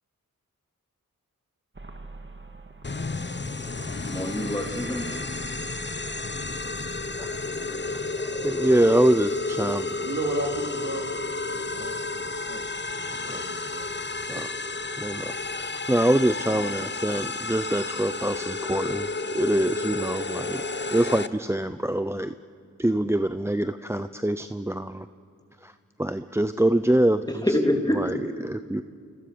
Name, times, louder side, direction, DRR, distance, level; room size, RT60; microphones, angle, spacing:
sound 1, 1.7-8.9, right 3 dB, 35° right, 1.9 m, -44 dB
sound 2, 2.8-21.3, left 3 dB, 35° left, 1.0 m, -31 dB
voice 1, 4.1-5.1 27.3-28.4, left 1 dB, 10° left, 3 dB, 3.2 m, -26 dB
voice 2, 7.2-10.1 12.9-13.4 14.3-14.5 15.0-19.1 19.3-20.6 20.9-22.3 22.8-25.1 25.6-25.7 26.0-27.5 27.9-28.8, right 1 dB, 10° right, 11 dB, 0.7 m, -25 dB
voice 3, 10.0-11.1 11.5-12.7 13.2-13.9 14.4-14.5, right 3 dB, 50° right, 2 dB, 3.6 m, -34 dB
29.0 x 27.0 x 7.0 m, 2.4 s
cardioid pair, 45°, 32 cm